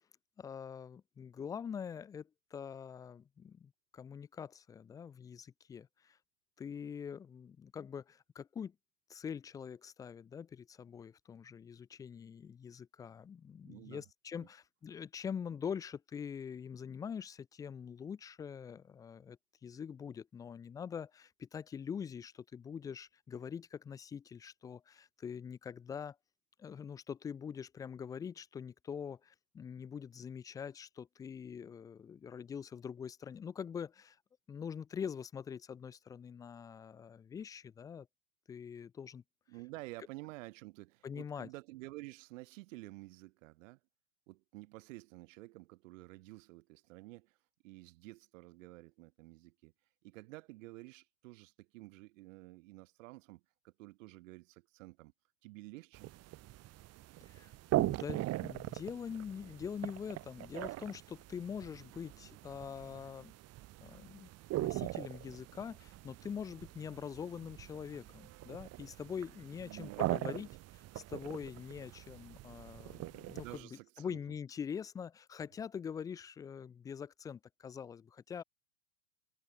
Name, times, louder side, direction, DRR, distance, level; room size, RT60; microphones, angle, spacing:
voice 1, 0.4-6.2 6.6-8.7 9.1-26.2 26.6-34.2 34.5-38.1 38.5-39.2 41.0-41.5 57.3-63.3 63.8-64.3 64.5-70.5 70.9-73.6 74.0-78.4, left 7 dB, 10° left, 0.5 m, -44 dB
voice 2, 13.6-14.0 14.4-14.5 39.5-43.8 44.3-47.4 47.6-49.7 50.0-55.1 55.4-56.1 69.5-70.6 73.4-74.2, right 21 dB, 50° right, 2.8 m, -51 dB
sound 1, 55.9-73.6, right 16 dB, 30° right, 2.2 m, -41 dB
figure-of-eight pair, 105°, 49 cm